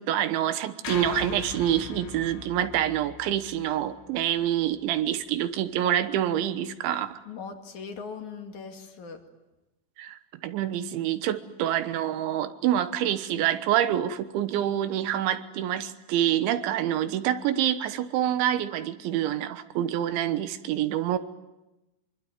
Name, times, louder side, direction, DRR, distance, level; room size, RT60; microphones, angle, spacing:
voice 1, 0.0-7.2 10.0-21.2, right 11 dB, 75° right, 11 dB, 3.4 m, -27 dB
sound 1, 0.8-5.2, left 11 dB, 80° left, 3.5 m, -42 dB
voice 2, 7.2-9.2, left 5 dB, 45° left, 4 dB, 3.0 m, -39 dB
25.0 x 25.0 x 9.6 m, 1.0 s
omnidirectional pair, 5.5 m